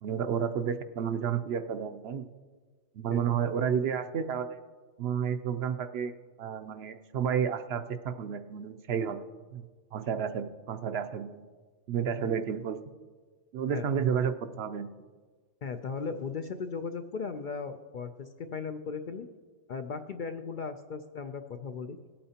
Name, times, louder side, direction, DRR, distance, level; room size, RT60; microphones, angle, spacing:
voice 1, 0.0-2.3 2.9-4.6 5.0-6.1 6.4-9.2 9.5-11.5 11.9-12.8 13.5-14.9, right 7 dB, 65° right, 10 dB, 0.8 m, -31 dB
voice 2, 15.6-19.3 19.7-22.0, left 5 dB, 60° left, 7 dB, 0.5 m, -37 dB
18.5 x 8.6 x 2.8 m, 1.5 s
omnidirectional pair, 1.2 m